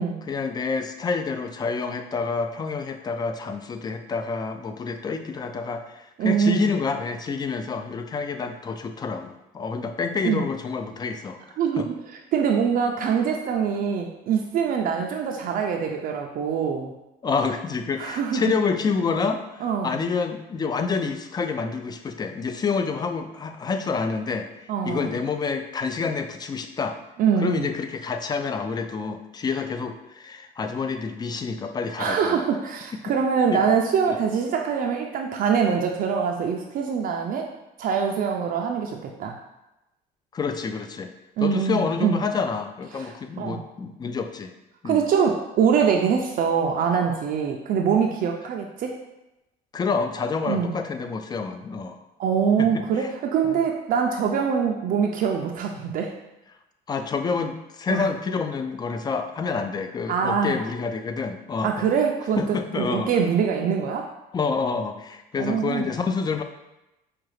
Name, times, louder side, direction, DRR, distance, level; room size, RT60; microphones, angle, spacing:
voice 1, 0.3-11.4 11.8-11.9 17.2-24.5 24.8-27.0 27.4-32.4 32.9-33.0 33.5-33.6 34.1-34.2 40.3-41.1 41.4-44.5 44.8-45.0 49.7-52.0 52.6-53.1 53.4-53.6 56.9-61.8 62.4-63.1 64.3-66.4, left 5 dB, 25° left, 7 dB, 0.3 m, -28 dB
voice 2, 6.2-6.6 10.2-10.4 11.6-11.9 12.3-16.9 18.0-18.5 19.6-20.0 24.7-25.1 27.2-27.7 32.0-37.5 37.8-39.4 41.4-42.2 42.9-43.7 44.8-48.9 50.5-50.7 52.2-56.1 57.9-58.1 60.1-60.6 61.6-64.1 65.4-65.9, right 7 dB, 55° right, 1 dB, 0.4 m, -24 dB
4.9 x 2.3 x 3.1 m, 0.94 s
cardioid pair, 110°, 17 cm